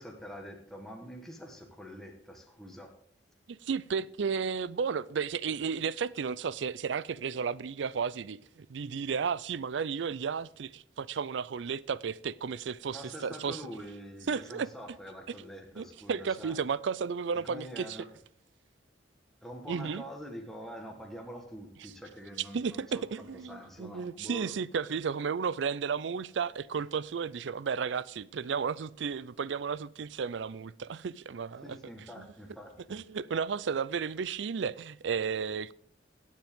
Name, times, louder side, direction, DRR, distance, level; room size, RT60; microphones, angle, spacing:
voice 1, 0.0-2.9 12.9-16.6 17.3-18.1 19.4-24.5 31.6-33.0, equal, ahead, 1.2 m, -45 dB
voice 2, 3.5-13.6 14.3-14.7 15.8-18.0 19.7-20.0 21.8-21.9 22.5-31.8 32.2-32.3 32.9-35.7, right 6 dB, 80° right, 0.4 m, -33 dB
17.0 x 7.4 x 3.6 m
head